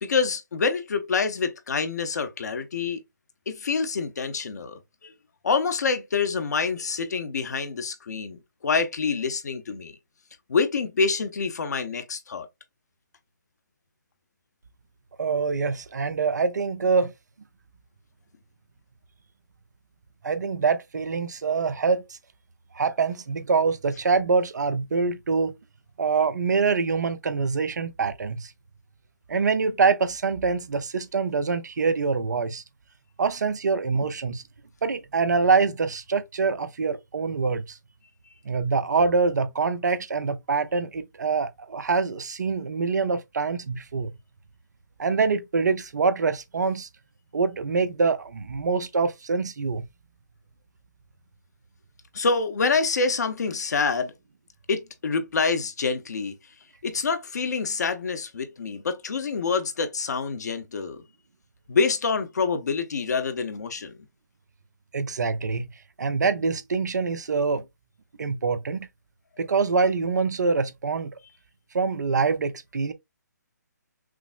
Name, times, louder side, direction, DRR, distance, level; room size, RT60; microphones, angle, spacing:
voice 1, 0.0-3.0 3.5-5.1 5.4-9.9 10.5-12.5 52.1-54.1 54.7-56.3 56.8-61.0 61.7-63.9, left 4 dB, 65° left, 0.7 m, -26 dB
voice 2, 15.2-17.1 20.2-22.2 22.7-25.5 26.0-28.5 29.3-32.6 33.2-34.4 34.8-37.8 38.4-44.1 45.0-46.9 47.3-49.8 64.9-65.7 66.0-67.6 68.2-68.9 69.4-71.1 71.7-72.9, right 4 dB, 70° right, 0.6 m, -25 dB
5.9 x 2.0 x 2.4 m
figure-of-eight pair, 145°, 10 cm